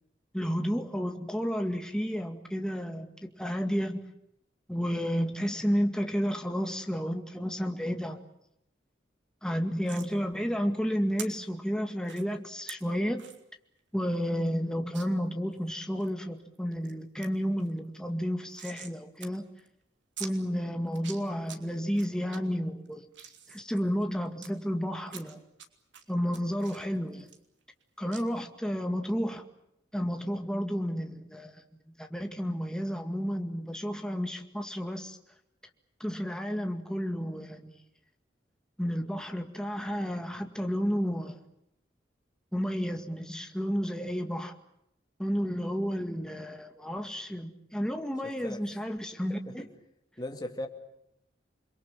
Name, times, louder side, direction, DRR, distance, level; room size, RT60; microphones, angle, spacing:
voice 1, 0.3-4.1 4.7-8.2 9.4-13.2 13.9-19.5 20.2-23.1 23.5-25.4 26.1-27.3 28.0-29.4 29.9-31.6 32.0-35.2 36.0-37.7 38.8-41.4 42.5-44.5 45.2-49.7, equal, 5° left, 4 dB, 2.0 m, -31 dB
sound 1, 9.9-10.1 11.2-11.3 12.0-12.2 12.7-12.8 13.2-13.4 13.8-13.9 14.1-14.2 14.9-15.1 15.6-16.1 16.6-16.9 17.2-17.3 17.6-19.0 19.2-19.3 19.6-19.7 20.2-20.3 20.9-21.6 22.0-22.4 22.9-24.5 25.1-25.7 25.9-27.8 28.1-28.2, right 8 dB, 80° right, 3.1 m, -45 dB
voice 2, 48.2-48.6 49.5-49.7 50.2-50.7, left 1 dB, 20° left, 4 dB, 2.6 m, -38 dB
29.5 x 23.0 x 7.6 m, 0.78 s
head